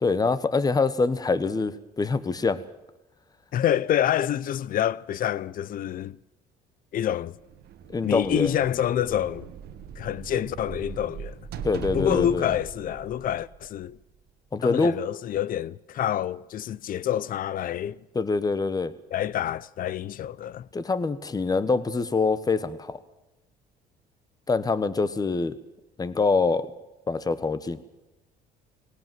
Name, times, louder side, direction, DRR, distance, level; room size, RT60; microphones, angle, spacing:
voice 1, 0.0-2.6 7.9-8.5 11.6-12.5 14.5-15.0 18.1-18.9 20.7-23.0 24.5-25.6 26.0-26.7 27.1-27.8, left 4 dB, 20° left, 1.3 m, -25 dB
voice 2, 3.5-6.2 6.9-7.4 8.0-9.5 10.0-11.4 11.9-14.0 14.6-18.0 19.1-20.7, left 10 dB, 55° left, 0.7 m, -27 dB
sound 1, 7.4-14.2, right 7 dB, 70° right, 1.7 m, -39 dB
19.5 x 18.0 x 7.8 m
cardioid pair, 110°, 17 cm